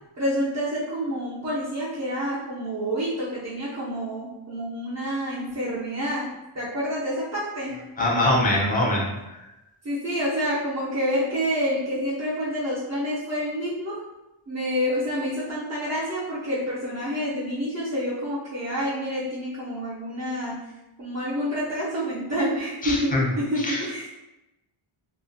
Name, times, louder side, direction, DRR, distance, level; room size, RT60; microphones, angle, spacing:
voice 1, 0.2-7.8 9.8-14.0 14.5-20.7 21.0-24.1, equal, 35° right, -8 dB, 0.5 m, -28 dB
voice 2, 8.0-9.1 22.8-23.3 23.6-23.8, left 1 dB, 20° left, -3 dB, 0.5 m, -22 dB
2.4 x 2.1 x 2.6 m, 0.97 s
wide cardioid pair, 105°, 49 cm